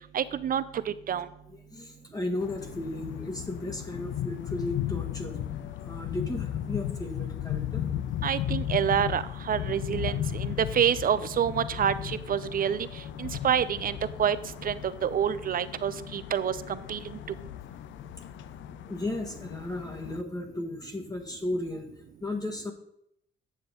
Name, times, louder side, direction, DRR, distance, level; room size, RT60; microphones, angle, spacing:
voice 1, 0.1-1.3 8.2-12.9 13.2-14.4 14.6-17.2, right 8 dB, 45° right, 14 dB, 0.6 m, -28 dB
voice 2, 1.5-5.4 5.8-7.9 18.8-21.9 22.2-22.7, left 1 dB, 20° left, 2 dB, 1.5 m, -35 dB
sound 1, 2.4-20.2, left 11 dB, 70° left, 0.4 m, -36 dB
9.5 x 7.0 x 3.8 m, 0.75 s
cardioid pair, 90°, 20 cm